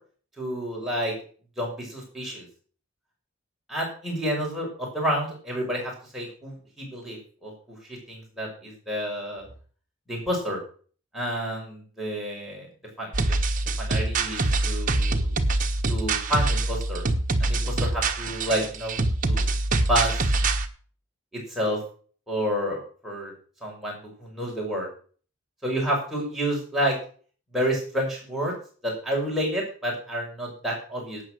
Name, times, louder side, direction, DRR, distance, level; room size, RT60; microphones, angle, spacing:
voice 1, 0.4-1.1 1.6-2.4 3.7-7.5 8.1-9.5 10.1-10.6 11.1-12.7 13.0-13.1 13.8-15.3 15.9-17.0 17.4-19.0 19.2-19.4 19.9-20.2 21.3-21.8 22.3-23.3 23.6-24.9 25.6-27.0 27.5-28.5 28.8-31.2, equal, ahead, -4 dB, 6.1 m, -29 dB
sound 1, 13.1-20.7, right 2 dB, 40° right, 1.2 m, -25 dB
12.0 x 8.9 x 6.4 m, 0.42 s
head